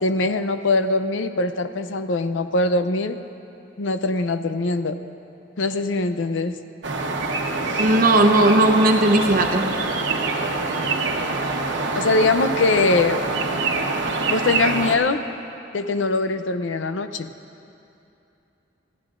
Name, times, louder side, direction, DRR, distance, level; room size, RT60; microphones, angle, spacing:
voice 1, 0.0-3.2 3.8-5.0 5.6-6.6 11.9-13.2 14.3-15.3 15.7-17.3, left 3 dB, 75° left, 9 dB, 0.6 m, -22 dB
sound 1, 6.8-15.0, right 3 dB, 65° right, 1.1 m, -25 dB
voice 2, 7.8-9.6, right 2 dB, 50° right, 4 dB, 0.9 m, -17 dB
27.5 x 15.0 x 2.5 m, 2.7 s
head